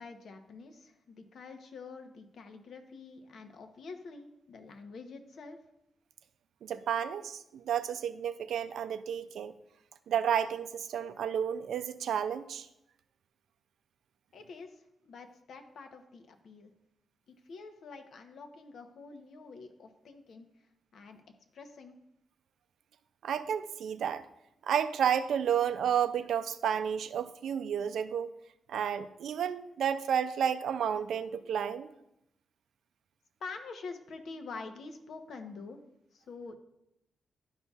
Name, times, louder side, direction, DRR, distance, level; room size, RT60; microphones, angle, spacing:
voice 1, 0.0-5.6 14.3-16.7 17.3-20.5 20.9-21.2 21.5-22.0 33.4-35.8 36.1-36.5, left 4 dB, 65° left, 6 dB, 0.8 m, -46 dB
voice 2, 6.6-9.5 10.1-12.7 23.2-24.2 24.6-28.3 28.7-31.9, right 8 dB, 80° right, 12 dB, 0.4 m, -31 dB
11.5 x 5.4 x 2.4 m, 0.83 s
wide cardioid pair, 145°, 0 cm